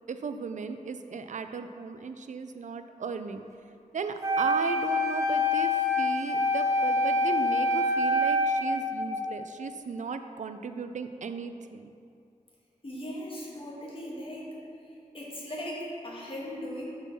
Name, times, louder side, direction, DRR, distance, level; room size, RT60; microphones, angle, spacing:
voice 1, 0.1-3.4 3.9-11.9, right 5 dB, 60° right, 9 dB, 0.4 m, -36 dB
Wind instrument woodwind instrument, 4.2-9.3, left 1 dB, 20° right, 0.9 m, -26 dB
voice 2, 12.8-14.5 15.1-16.9, equal, 40° left, -5 dB, 1.6 m, -38 dB
5.4 x 4.4 x 5.9 m, 2.4 s
wide cardioid pair, 65°, 14 cm